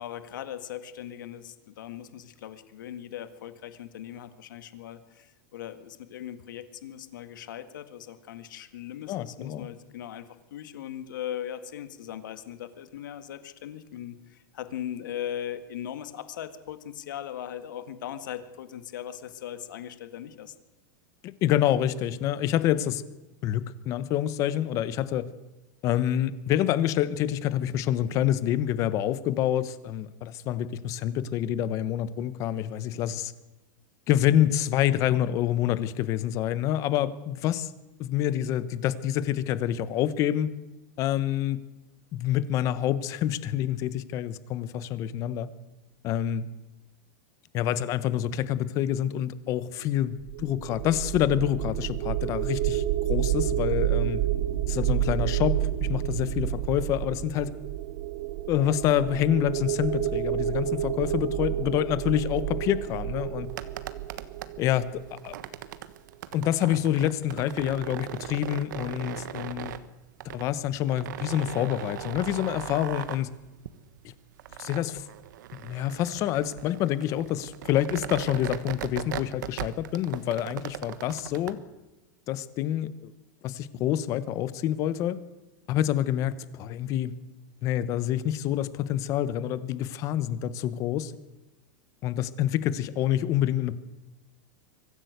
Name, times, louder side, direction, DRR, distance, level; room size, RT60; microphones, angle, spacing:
voice 1, 0.0-20.5, left 10 dB, 85° left, 10 dB, 1.9 m, -39 dB
voice 2, 9.1-9.7 21.2-23.0 23.4-25.2 25.8-33.3 34.1-37.7 38.0-40.5 41.0-41.6 42.1-45.5 46.0-46.4 47.5-52.8 53.1-54.2 54.7-57.5 58.5-63.5 64.6-65.3 66.3-69.7 70.3-73.3 74.0-74.1 74.6-75.0 75.6-81.6 82.3-83.1 83.4-85.2 85.7-87.1 87.6-91.1 92.0-93.8, left 11 dB, 30° left, 15 dB, 1.1 m, -27 dB
sound 1, 50.2-65.3, right 13 dB, 45° right, 0.9 m, -29 dB
sound 2, 63.4-81.5, right 11 dB, 75° right, 1.4 m, -39 dB
23.5 x 15.0 x 8.1 m, 1.0 s
supercardioid pair, 165°, 10 cm